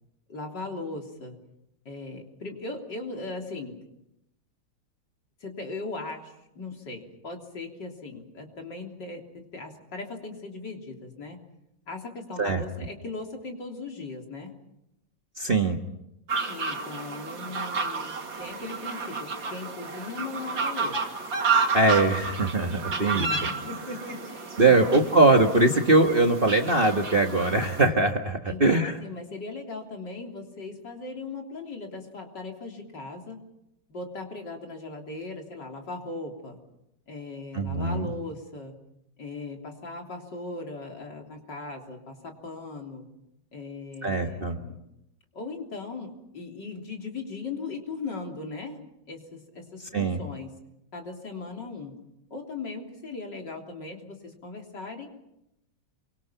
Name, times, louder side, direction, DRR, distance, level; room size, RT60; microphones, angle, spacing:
voice 1, 0.3-1.4 1.9-3.8 5.4-11.5 11.9-14.6 16.5-18.1 18.4-21.1 22.9-25.2 28.4-33.4 33.9-36.6 37.1-38.8 39.2-43.1 43.5-44.8 45.3-48.8 49.1-50.6 50.9-51.9 52.3-55.1, left 3 dB, 65° left, 2 dB, 4.0 m, -38 dB
voice 2, 15.4-15.8 21.7-23.3 24.6-28.9 37.5-38.1 44.0-44.6 49.9-50.2, right 2 dB, 30° right, 4 dB, 1.6 m, -21 dB
sound 1, 16.3-27.8, right 4 dB, 75° right, 3.1 m, -31 dB
28.0 x 24.0 x 5.8 m, 0.85 s
omnidirectional pair, 2.1 m